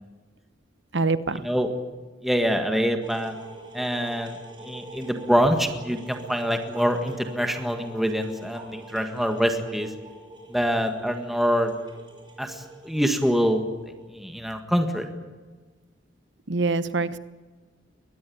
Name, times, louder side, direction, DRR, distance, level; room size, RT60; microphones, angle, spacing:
voice 1, 0.9-1.4 16.5-17.2, right 3 dB, 70° right, 14 dB, 1.1 m, -24 dB
voice 2, 2.2-3.3 3.7-4.4 4.6-9.9 10.5-11.7 12.4-13.6 14.1-15.1, equal, ahead, 5 dB, 1.8 m, -25 dB
sound 1, 3.0-14.1, right 2 dB, 25° right, 5.9 m, -45 dB
22.5 x 20.0 x 8.6 m, 1.4 s
head